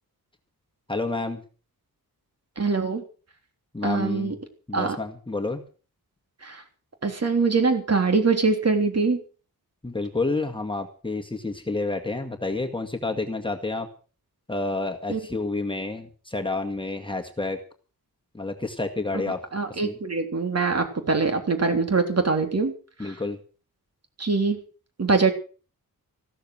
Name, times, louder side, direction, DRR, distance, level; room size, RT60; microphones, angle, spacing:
voice 1, 0.9-1.4 3.7-4.4 4.7-5.6 9.8-13.9 14.5-17.6 18.3-19.4 19.7-20.0 23.0-23.4, left 2 dB, 15° left, 3 dB, 2.0 m, -29 dB
voice 2, 2.6-3.0 3.8-4.4 4.7-5.0 6.4-6.6 7.0-9.2 15.1-15.2 19.5-22.7 23.0-23.1 24.2-24.6 25.0-25.3, right 4 dB, 45° right, 6 dB, 3.5 m, -23 dB
15.5 x 13.5 x 6.3 m, 0.38 s
wide cardioid pair, 135°, 37 cm